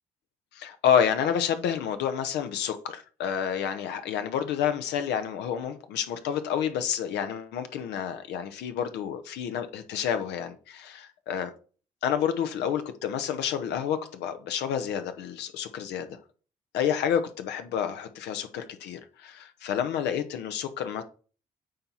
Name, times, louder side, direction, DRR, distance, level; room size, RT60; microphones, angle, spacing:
voice 1, 0.5-11.5 12.0-16.2 16.7-21.0, left 8 dB, 80° left, 0.9 m, -29 dB
8.6 x 3.0 x 5.6 m
hypercardioid pair, 50°, 17 cm